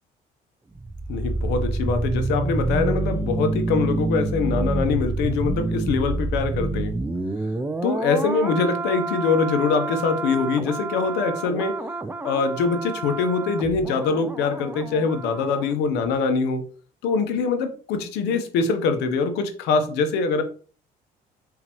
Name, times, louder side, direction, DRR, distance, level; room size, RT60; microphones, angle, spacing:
sound 1, 0.7-15.7 16.0-16.2, right 2 dB, 10° right, 0.4 m, -28 dB
voice 1, 1.1-6.9 7.8-11.7 12.2-16.6 17.0-20.4, left 4 dB, 85° left, 8 dB, 0.9 m, -23 dB
4.3 x 3.9 x 2.9 m, 0.40 s
cardioid pair, 110°, 17 cm